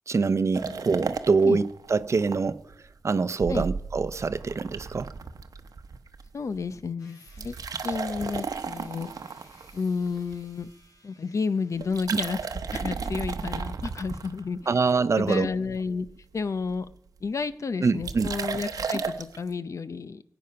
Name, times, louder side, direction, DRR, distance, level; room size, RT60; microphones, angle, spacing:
voice 1, 0.1-5.1 12.1-12.2 14.7-15.5 17.8-18.3, right 4 dB, 50° right, 0.7 m, -25 dB
sound 1, 0.5-2.4 2.7-2.8 3.4-6.3 6.5-6.8 7.3-10.6 11.8-14.8 15.3-15.8 16.1-16.2 16.4-16.9 18.0-19.4, right 5 dB, 80° right, 0.9 m, -34 dB
voice 2, 6.3-7.5 7.8-9.1 9.7-10.7 11.0-12.4 12.7-14.6 15.2-16.1 16.3-16.9 17.2-20.2, left 5 dB, 55° left, 0.7 m, -31 dB
sound 2, 7.0-12.1, left 2 dB, 85° left, 2.7 m, -58 dB
22.5 x 9.0 x 5.7 m
wide cardioid pair, 95°, 6 cm